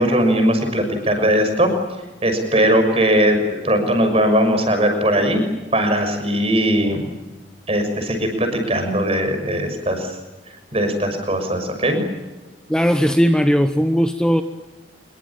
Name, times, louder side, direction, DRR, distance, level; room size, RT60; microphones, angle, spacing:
voice 1, 0.0-1.7 2.2-5.4 5.7-7.0 7.7-10.2 10.7-12.0, equal, 30° right, 6 dB, 6.2 m, -19 dB
voice 2, 12.7-14.4, equal, 5° left, 7 dB, 0.9 m, -17 dB
26.5 x 23.0 x 8.8 m, 1.1 s
head